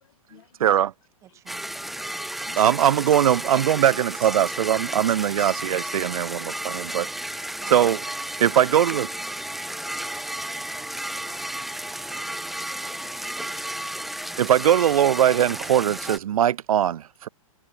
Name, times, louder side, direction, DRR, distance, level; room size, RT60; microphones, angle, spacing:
voice 1, 0.6-0.9 2.6-7.1 7.7-8.0 8.4-9.1 14.4-17.3, right 10 dB, 85° right, 0.5 m, -21 dB
voice 2, 1.2-1.7 6.9-7.0 7.6-7.8 9.6-11.5, right 11 dB, 15° right, 4.8 m, -53 dB
sound 1, 1.5-16.2, right 1 dB, ahead, 0.8 m, -33 dB
voice 3, 11.3-12.2 12.5-14.4, left 12 dB, 50° left, 1.7 m, -54 dB
hypercardioid pair, 165°, 18 cm